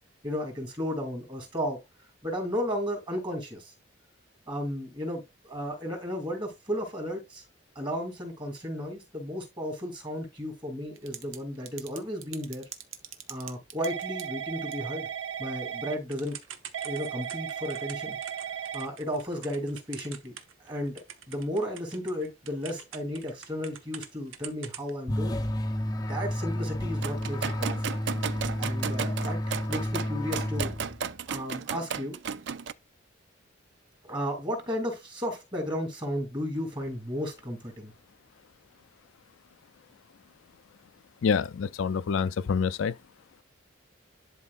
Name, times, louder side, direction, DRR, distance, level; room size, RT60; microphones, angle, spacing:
voice 1, 0.2-1.8 2.2-3.7 4.5-7.4 7.7-12.6 13.3-15.1 15.4-16.4 16.8-18.2 18.7-20.3 20.6-21.0 21.3-25.4 26.0-27.9 28.6-30.7 31.3-32.2 34.0-37.9, equal, 25° right, 2.6 m, -34 dB
Typing / Telephone, 11.0-11.4 11.7-20.7 21.0-24.1 24.3-24.9, right 9 dB, 85° right, 1.0 m, -37 dB
sound 1, 25.1-31.2, left 1 dB, 20° left, 0.5 m, -31 dB
sound 2, 27.0-32.7, right 6 dB, 60° right, 0.4 m, -34 dB
voice 2, 41.2-42.9, left 6 dB, 80° left, 0.4 m, -27 dB
11.0 x 4.4 x 2.5 m
head